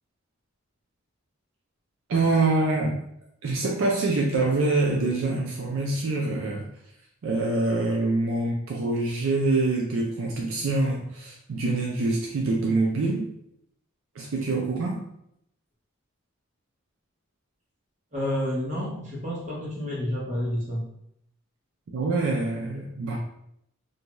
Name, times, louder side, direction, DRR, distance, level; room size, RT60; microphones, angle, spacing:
voice 1, 2.1-3.0 3.4-6.6 7.2-13.3 14.2-15.0 21.9-23.2, right 2 dB, 70° right, -1 dB, 0.4 m, -25 dB
voice 2, 18.1-20.9, left 1 dB, 35° right, -5 dB, 0.9 m, -29 dB
2.6 x 2.2 x 2.9 m, 0.75 s
head